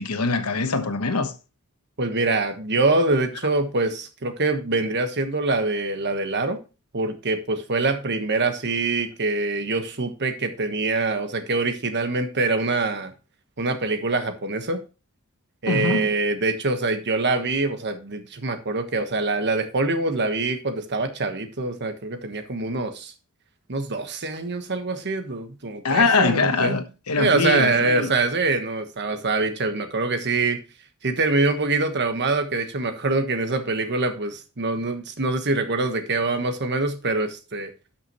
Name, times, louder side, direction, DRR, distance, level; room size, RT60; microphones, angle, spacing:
voice 1, 0.0-1.3 15.7-16.1 25.8-28.1, left 4 dB, 75° left, 1.1 m, -23 dB
voice 2, 2.0-6.6 6.9-13.1 13.6-14.8 15.6-23.1 23.7-26.8 27.2-30.6 31.0-37.7, right 3 dB, 50° right, 1.3 m, -24 dB
12.0 x 6.0 x 3.0 m
head